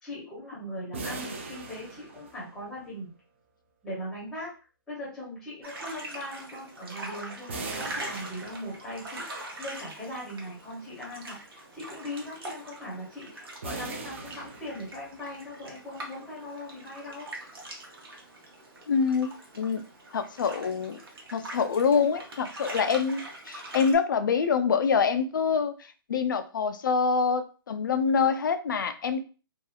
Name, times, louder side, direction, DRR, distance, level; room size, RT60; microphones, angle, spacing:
voice 1, 0.0-3.1 3.8-4.5 4.9-17.3, left 1 dB, 5° left, -7 dB, 0.8 m, -40 dB
sound 1, 0.9-2.8 7.5-9.1 13.6-15.3, right 3 dB, 30° right, 0.4 m, -40 dB
sound 2, 5.6-23.9, right 1 dB, 80° right, 1.0 m, -43 dB
voice 2, 18.9-19.8 20.1-21.0 21.3-25.7 26.1-29.2, left 6 dB, 55° left, 9 dB, 0.4 m, -25 dB
2.8 x 2.3 x 2.3 m, 0.36 s
hypercardioid pair, 175°, 12 cm